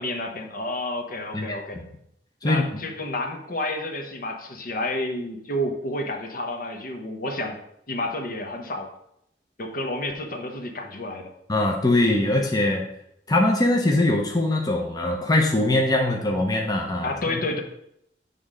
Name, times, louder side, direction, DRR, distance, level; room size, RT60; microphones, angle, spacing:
voice 1, 0.0-1.8 2.4-7.6 7.9-8.9 9.6-11.3 17.0-17.6, left 1 dB, 55° left, 3 dB, 1.0 m, -30 dB
voice 2, 2.4-2.8 11.5-12.9 13.3-17.4, left 2 dB, 20° left, 0 dB, 0.8 m, -22 dB
6.9 x 3.8 x 5.4 m, 0.75 s
head